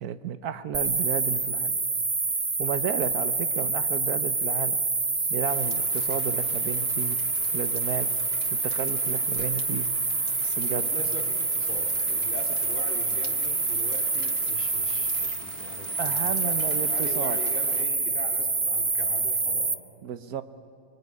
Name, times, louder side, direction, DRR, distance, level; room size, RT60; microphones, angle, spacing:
voice 1, 0.0-1.7 2.6-4.8 5.2-7.2 7.5-8.1 8.5-9.9 10.4-10.9 16.0-17.4 20.0-20.4, right 8 dB, 80° right, 12 dB, 1.4 m, -33 dB
sound 1, 0.7-19.7, right 3 dB, 25° right, 0.7 m, -27 dB
Rain, 5.5-17.8, left 5 dB, 85° left, 2.1 m, -47 dB
voice 2, 10.8-19.8, equal, 10° left, 3 dB, 3.0 m, -41 dB
25.0 x 21.5 x 9.7 m, 2.3 s
omnidirectional pair, 1.6 m